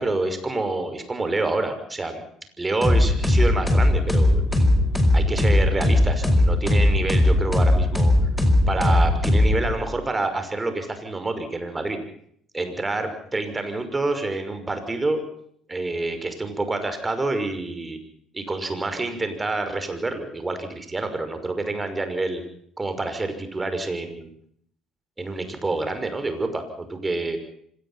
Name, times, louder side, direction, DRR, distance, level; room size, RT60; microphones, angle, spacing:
voice 1, 0.0-2.2 2.6-4.8 5.1-8.1 8.7-12.0 12.5-15.2 15.7-18.0 18.3-22.4 22.8-24.3 25.2-27.4, right 2 dB, 20° right, 8 dB, 5.8 m, -27 dB
sound 1, 2.8-10.0, left 1 dB, 5° left, 5.1 m, -19 dB
25.5 x 19.0 x 5.8 m, 0.64 s
hypercardioid pair, 65°, 0 cm